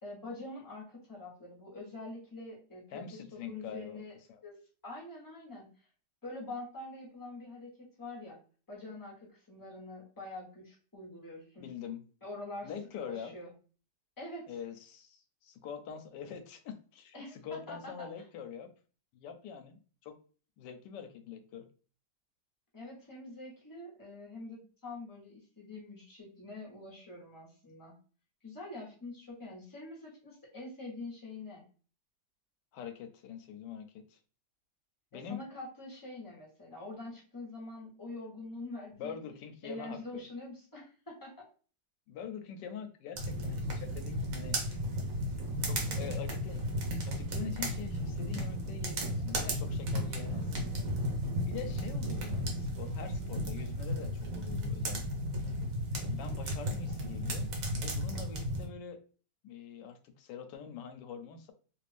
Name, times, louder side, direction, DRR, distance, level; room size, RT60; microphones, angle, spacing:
voice 1, 0.0-4.1 4.4-5.7 6.2-8.4 8.7-11.7 12.2-12.7 13.0-13.5 14.2-14.5 17.1-18.1 22.7-27.9 28.4-31.6 35.1-39.2 39.6-41.4, left 2 dB, 15° left, -4 dB, 1.0 m, -45 dB
voice 2, 2.9-4.0 4.3-4.4 11.6-12.0 12.6-13.3 14.5-18.7 19.1-20.2 20.6-21.7 32.7-34.2 35.1-35.4 39.0-40.3 42.1-44.8 45.6-46.6 47.1-50.8 51.4-55.6 55.9-59.0 59.4-61.5, left 7 dB, 85° left, 8 dB, 1.2 m, -44 dB
sound 1, 43.2-58.7, equal, 60° right, 1.1 m, -34 dB
3.0 x 2.5 x 3.3 m, 0.39 s
omnidirectional pair, 1.9 m